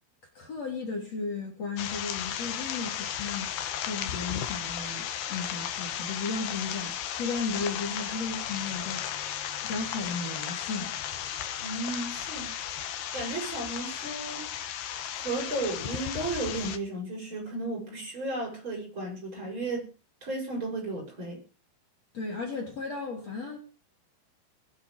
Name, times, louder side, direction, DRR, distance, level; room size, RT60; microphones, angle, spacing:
voice 1, 0.4-9.1 9.6-11.0 22.1-23.6, left 4 dB, 40° left, 4.3 m, -35 dB
sound 1, 1.8-16.8, left 10 dB, 75° left, 3.3 m, -35 dB
voice 2, 11.6-12.8 13.1-14.5 15.1-19.9 20.2-21.4, right 2 dB, 30° right, 8.2 m, -34 dB
22.5 x 10.5 x 5.1 m
omnidirectional pair, 4.5 m